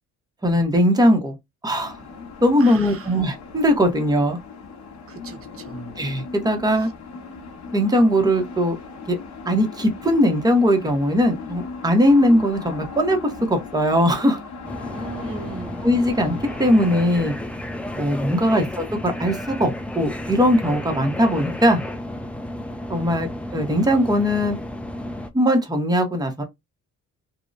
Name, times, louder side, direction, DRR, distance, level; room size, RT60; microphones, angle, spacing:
voice 1, 0.4-1.4 1.6-1.9 2.4-4.4 6.0-6.9 7.7-8.8 9.1-9.2 9.5-13.2 13.5-14.4 15.8-17.3 18.0-21.8 22.9-24.6 25.3-26.4, equal, 10° right, 0.8 m, -20 dB
sound 1, 1.7-17.2, left 4 dB, 60° left, 0.8 m, -38 dB
voice 2, 2.6-3.2 5.1-6.0 14.9-15.8, right 3 dB, 45° right, 0.8 m, -38 dB
sound 2, 14.6-25.3, left 1 dB, 5° left, 0.3 m, -32 dB
2.7 x 2.1 x 2.4 m
cardioid pair, 85°, 32 cm